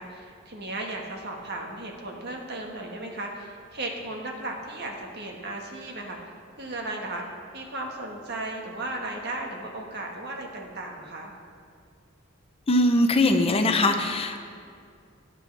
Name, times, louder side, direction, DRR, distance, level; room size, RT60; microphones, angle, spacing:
voice 1, 0.0-6.2 6.6-7.2 7.5-11.3, right 2 dB, 55° right, 1 dB, 1.5 m, -35 dB
voice 2, 12.7-14.4, left 1 dB, 30° left, 6 dB, 0.7 m, -21 dB
18.0 x 9.3 x 3.4 m, 2.3 s
head